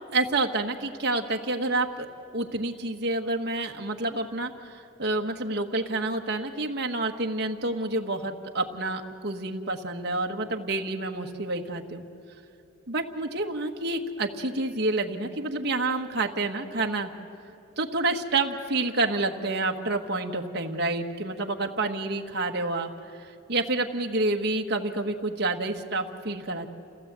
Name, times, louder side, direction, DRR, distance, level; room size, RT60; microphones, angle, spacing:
voice 1, 0.1-2.1 2.3-12.0 12.9-17.1 17.8-22.9 23.2-26.7, right 2 dB, 50° right, 3 dB, 1.4 m, -28 dB
29.0 x 16.0 x 8.2 m, 2.9 s
head